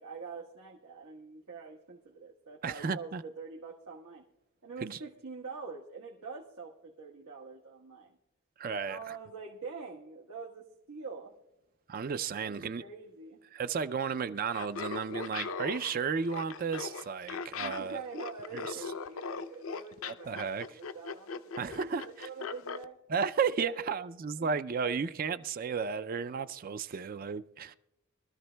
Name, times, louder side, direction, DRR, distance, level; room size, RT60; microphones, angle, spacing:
voice 1, 0.0-4.2 4.6-8.1 8.8-11.3 12.4-13.4 17.6-23.0 23.6-23.7 24.4-24.6, right 4 dB, 80° right, 1.2 m, -45 dB
voice 2, 2.6-3.2 4.8-5.0 8.6-9.2 11.9-12.8 13.5-18.0 18.5-18.8 20.3-20.8 21.6-22.3 23.1-27.7, right 6 dB, 40° right, 0.3 m, -33 dB
Laughter, 14.5-22.8, left 5 dB, 65° left, 0.5 m, -39 dB
23.0 x 13.5 x 2.2 m
head